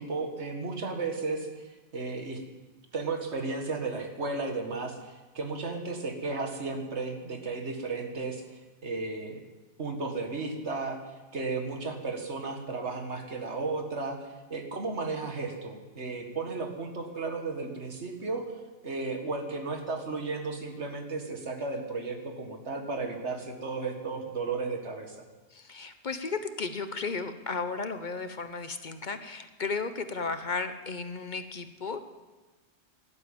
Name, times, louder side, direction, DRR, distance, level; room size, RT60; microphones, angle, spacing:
voice 1, 0.0-1.5 1.9-2.4 2.9-8.4 8.8-9.4 9.8-11.0 11.3-14.2 14.5-18.5 18.8-25.2, right 3 dB, 80° right, 4 dB, 2.1 m, -34 dB
voice 2, 25.5-32.0, left 4 dB, 45° left, 10 dB, 0.9 m, -34 dB
12.5 x 12.0 x 8.8 m, 1.2 s
omnidirectional pair, 1.1 m